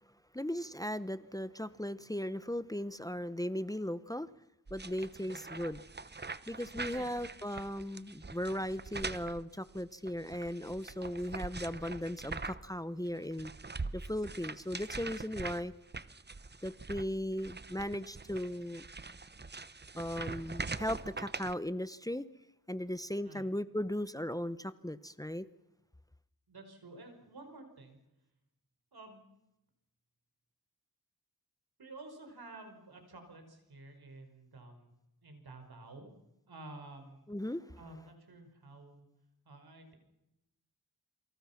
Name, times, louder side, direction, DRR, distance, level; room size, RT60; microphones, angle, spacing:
voice 1, 0.3-4.3 4.7-5.8 6.2-13.5 13.9-15.7 16.6-18.8 20.0-22.3 22.7-25.4 37.3-37.8, left 1 dB, 10° left, 15 dB, 0.8 m, -37 dB
sound 1, 4.7-12.8 13.1-21.5, right 3 dB, 30° right, 1.0 m, -43 dB
voice 2, 26.5-28.0 28.9-29.2 31.8-34.9 35.2-36.1 36.5-37.3 37.8-39.1 39.5-40.0, right 2 dB, 85° right, 6 dB, 5.2 m, -51 dB
28.0 x 25.0 x 5.9 m, 0.91 s
wide cardioid pair, 80°, 37 cm